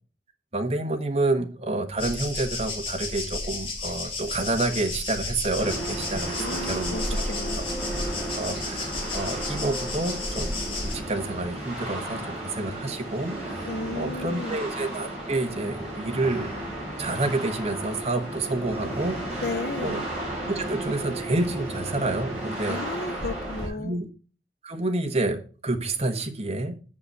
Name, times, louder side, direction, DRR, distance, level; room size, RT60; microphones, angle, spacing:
voice 1, 0.5-7.2 8.2-16.5 17.0-19.4 19.8-20.0 20.5-22.8 23.8-24.1 24.6-26.7, right 2 dB, 35° right, 1.3 m, -29 dB
sound 1, 2.0-10.9, left 2 dB, 35° left, 2.8 m, -32 dB
sound 2, 5.6-23.7, right 1 dB, 5° right, 4.8 m, -34 dB
voice 2, 6.4-7.0 7.3-7.6 13.7-14.6 19.4-20.0 22.7-24.0, left 3 dB, 60° left, 0.6 m, -34 dB
7.0 x 6.8 x 6.8 m
head